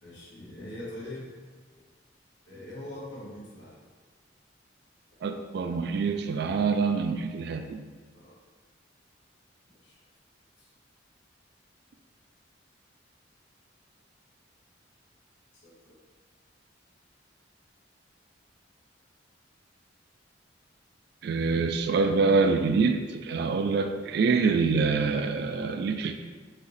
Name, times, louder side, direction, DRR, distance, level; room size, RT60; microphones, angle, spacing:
voice 1, 0.0-1.3 2.5-3.8 8.1-8.4 9.8-10.0 10.6-10.7 15.6-16.0, left 1 dB, 70° left, -6 dB, 1.4 m, -42 dB
voice 2, 5.2-7.9 21.2-26.1, right 4 dB, 60° right, 7 dB, 0.3 m, -25 dB
5.7 x 2.6 x 3.2 m, 1.5 s
head